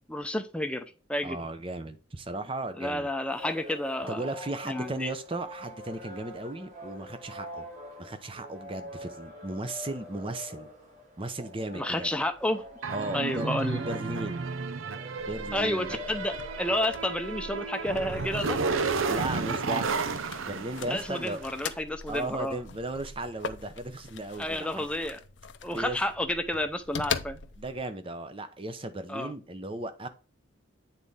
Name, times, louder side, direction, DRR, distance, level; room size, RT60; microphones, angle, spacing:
voice 1, 0.1-1.4 2.8-4.3 4.7-5.1 11.7-12.6 13.1-13.8 15.5-18.6 20.8-22.6 24.4-25.2 25.6-27.4 29.1-29.3, left 1 dB, 5° left, 0.6 m, -31 dB
voice 2, 1.2-3.1 4.1-7.7 8.0-10.7 11.2-12.1 12.9-14.5 15.3-15.9 19.0-19.9 20.5-21.4 22.1-24.9 25.7-26.0 27.6-30.1, right 2 dB, 25° right, 0.8 m, -36 dB
sound 1, 3.2-20.2, equal, 45° right, 3.3 m, -44 dB
sound 2, 12.8-21.5, right 4 dB, 85° right, 0.7 m, -32 dB
sound 3, 15.2-27.8, left 6 dB, 65° left, 0.6 m, -41 dB
8.4 x 4.1 x 3.6 m
head